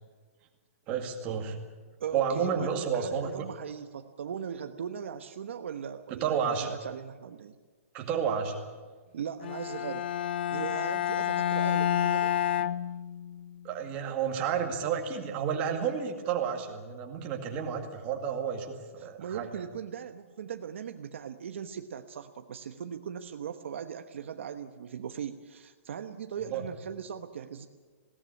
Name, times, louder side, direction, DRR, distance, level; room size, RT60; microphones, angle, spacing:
voice 1, 0.9-1.6 2.1-3.3 6.2-6.7 7.9-8.6 13.6-19.5 26.5-26.6, right 7 dB, 20° right, 2 dB, 2.1 m, -31 dB
voice 2, 2.0-7.5 9.1-10.1 10.5-12.4 19.0-27.7, right 8 dB, 55° right, 7 dB, 1.1 m, -39 dB
Bowed string instrument, 9.4-13.5, left 10 dB, 45° left, 0.6 m, -29 dB
20.5 x 18.0 x 9.8 m, 1.4 s
hypercardioid pair, 175°, 8 cm